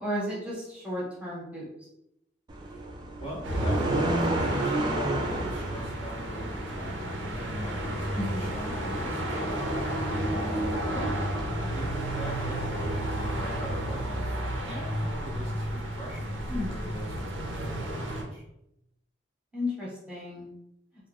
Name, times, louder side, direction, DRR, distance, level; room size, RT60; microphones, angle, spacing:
voice 1, 0.0-1.7 8.1-8.6 10.9-11.4 16.5-16.7 19.5-20.5, left 1 dB, 5° right, -7 dB, 0.9 m, -34 dB
sound 1, 2.5-11.5, right 1 dB, 25° right, 0.3 m, -33 dB
voice 2, 3.2-7.1 7.4-9.5 10.5-10.8 11.7-14.3 14.6-18.4, equal, 30° left, -6 dB, 0.6 m, -41 dB
sound 2, 3.4-18.2, right 1 dB, 70° right, 0.6 m, -32 dB
2.4 x 2.2 x 3.4 m, 0.82 s
head